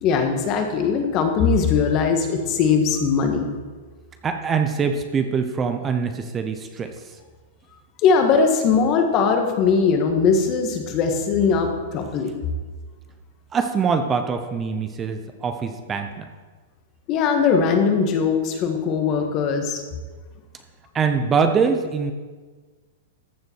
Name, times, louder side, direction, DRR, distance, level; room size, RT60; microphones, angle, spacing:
voice 1, 0.0-3.5 8.0-12.3 17.1-19.8, left 5 dB, 40° left, 5 dB, 1.5 m, -20 dB
voice 2, 4.2-7.2 13.5-16.3 20.9-22.1, right 5 dB, 20° right, 7 dB, 0.7 m, -23 dB
14.0 x 6.8 x 4.6 m, 1.4 s
hypercardioid pair, 135°, 0 cm